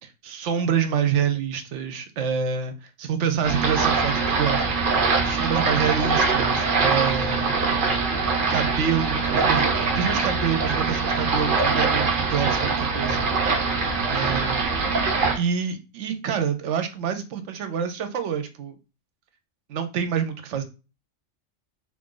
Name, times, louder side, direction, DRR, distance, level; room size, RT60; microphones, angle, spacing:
voice 1, 0.2-7.5 8.5-13.2 14.1-14.6 15.3-18.7 19.7-20.6, right 7 dB, 80° right, 8 dB, 1.0 m, -27 dB
sound 1, 3.4-15.4, right 4 dB, 55° right, 0.8 m, -23 dB
2.7 x 2.6 x 3.7 m, 0.30 s
omnidirectional pair, 1.2 m